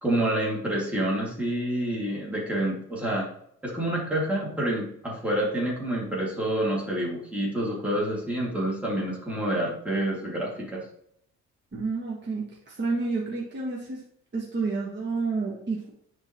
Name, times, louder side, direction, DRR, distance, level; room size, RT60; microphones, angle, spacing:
voice 1, 0.0-3.3 3.6-10.8, right 1 dB, 5° right, -5 dB, 2.3 m, -28 dB
voice 2, 11.7-14.0 14.3-15.9, right 4 dB, 35° right, -3 dB, 1.4 m, -30 dB
9.8 x 3.9 x 3.0 m, 0.70 s
cardioid pair, 90°, 30 cm